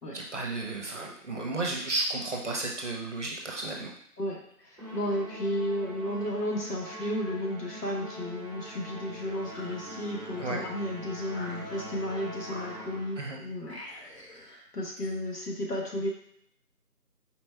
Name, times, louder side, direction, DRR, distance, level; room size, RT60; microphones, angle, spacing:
voice 1, 0.1-3.9 10.4-10.7 13.2-13.4, right 2 dB, 50° right, -1 dB, 0.8 m, -33 dB
voice 2, 4.2-14.0 14.3-16.1, left 1 dB, 75° left, -2 dB, 1.5 m, -33 dB
Musical instrument, 4.8-13.3, right 1 dB, 20° right, 1.2 m, -43 dB
sound 1, 9.3-10.8 11.3-12.1 12.4-13.2 13.6-14.5, left 1 dB, 40° left, 1.1 m, -47 dB
4.2 x 2.3 x 4.3 m, 0.69 s
figure-of-eight pair, 170°, 47 cm